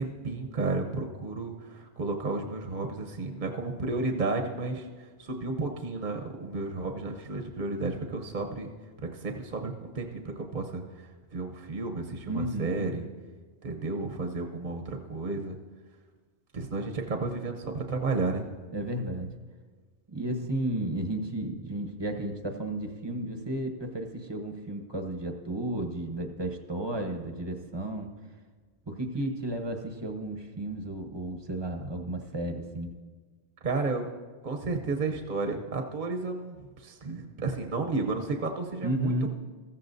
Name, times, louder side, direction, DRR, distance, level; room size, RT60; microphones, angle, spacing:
voice 1, 0.0-8.7 9.0-10.8 11.3-13.0 13.6-15.6 16.5-18.5 33.6-34.1 34.4-39.3, right 3 dB, 45° right, 4 dB, 1.0 m, -32 dB
voice 2, 12.3-12.9 18.7-19.3 20.1-28.1 28.9-33.0 38.8-39.3, right 1 dB, 25° right, 4 dB, 0.9 m, -33 dB
14.5 x 14.5 x 2.7 m, 1.4 s
omnidirectional pair, 1.2 m